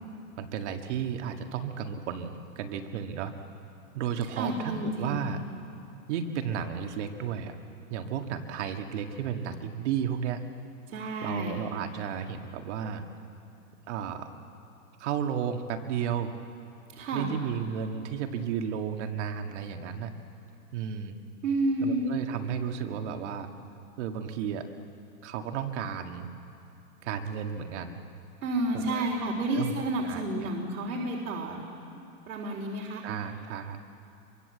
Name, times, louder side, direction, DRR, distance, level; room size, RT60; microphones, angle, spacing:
voice 1, 0.4-3.3 3.9-5.4 6.1-7.6 7.9-10.4 11.2-13.0 13.9-14.3 15.0-16.3 17.1-20.1 20.7-21.2 21.8-23.5 24.0-24.6 25.2-26.3 27.0-28.0 28.7-29.1 29.5-29.8 30.0-30.5 33.0-33.8, right 8 dB, 50° right, 5 dB, 2.0 m, -33 dB
voice 2, 4.2-5.3 10.9-11.6 16.9-17.3 21.4-22.1 28.4-31.6 31.9-33.0, right 2 dB, 85° right, -1 dB, 4.0 m, -31 dB
25.0 x 24.0 x 7.8 m, 2.7 s
supercardioid pair, 160°, 46 cm